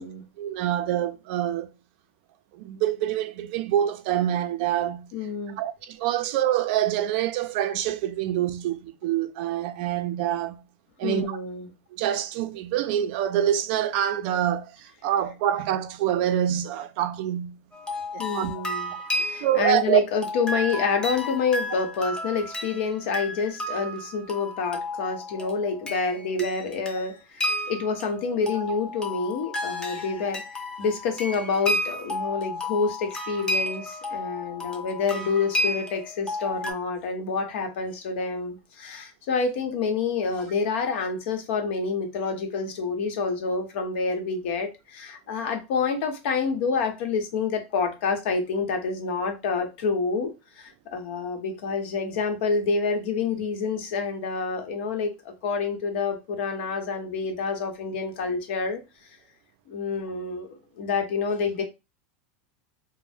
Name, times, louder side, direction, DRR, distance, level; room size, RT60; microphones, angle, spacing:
voice 1, 0.4-1.7 2.5-5.1 5.6-10.6 11.0-11.4 11.9-17.6 18.1-18.5 19.2-20.0, right 11 dB, 60° right, 0.4 m, -26 dB
voice 2, 5.1-5.6 11.0-11.7 18.2-58.8 59.7-61.6, left 5 dB, 70° left, 0.8 m, -28 dB
sound 1, 17.7-36.7, left 1 dB, 15° left, 0.6 m, -32 dB
2.6 x 2.0 x 3.3 m
supercardioid pair, 145°, 6 cm